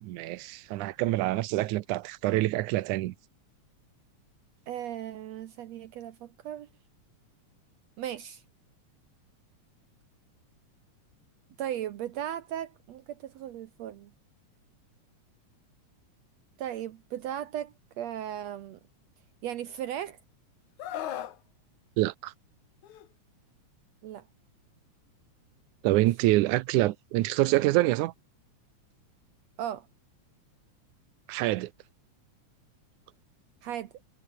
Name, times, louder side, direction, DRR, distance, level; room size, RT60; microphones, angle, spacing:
voice 1, 0.0-3.1 22.0-22.3 25.8-28.1 31.3-31.7, right 17 dB, 85° right, 2.2 m, -26 dB
voice 2, 4.7-6.7 8.0-8.4 11.6-14.1 16.6-18.8 19.4-20.2 24.0-24.2 25.9-26.0 29.6-29.9 33.6-33.9, right 11 dB, 70° right, 2.0 m, -36 dB
Screaming, 20.8-21.4 22.8-23.1, left 11 dB, 80° left, 2.9 m, -36 dB
omnidirectional pair, 3.4 m